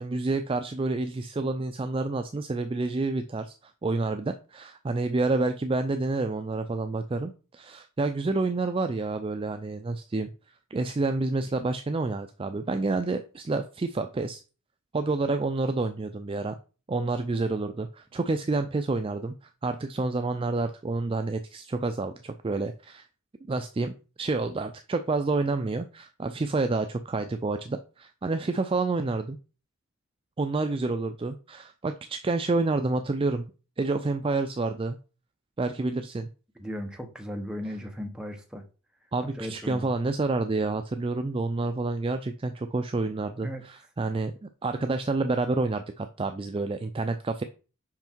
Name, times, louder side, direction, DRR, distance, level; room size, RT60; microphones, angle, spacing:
voice 1, 0.0-10.3 10.7-14.4 14.9-16.5 16.9-19.3 19.6-23.0 23.5-29.4 30.4-33.4 33.8-35.0 35.6-36.3 39.1-44.3 44.6-47.4, right 3 dB, 25° right, 0.3 m, -29 dB
voice 2, 36.6-38.6 39.4-39.9 43.4-43.6, equal, 5° right, 1.0 m, -36 dB
5.8 x 5.2 x 4.5 m
head